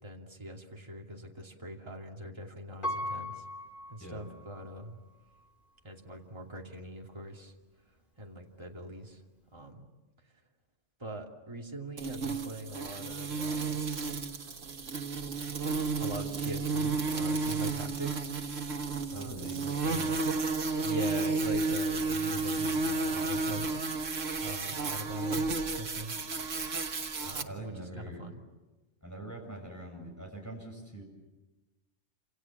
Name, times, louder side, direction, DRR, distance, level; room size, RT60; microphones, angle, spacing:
voice 1, 0.0-3.4 3.9-5.0 5.8-7.5 8.2-9.2 9.5-9.8 11.0-13.8 16.0-18.3 19.1-20.1 20.8-24.0 24.4-25.5 25.8-26.2 27.2-28.4, right 1 dB, 20° right, 0 dB, 2.8 m, -42 dB
Piano, 2.8-4.8 5.4-5.5, left 1 dB, 40° left, 2.9 m, -38 dB
sound 1, 12.0-27.4, right 3 dB, 90° right, 1.8 m, -32 dB
voice 2, 19.1-19.6 19.9-20.2 27.5-28.2 29.0-31.0, right 1 dB, 15° left, 1 dB, 7.4 m, -43 dB
28.5 x 27.5 x 7.3 m, 1.2 s
omnidirectional pair, 1.3 m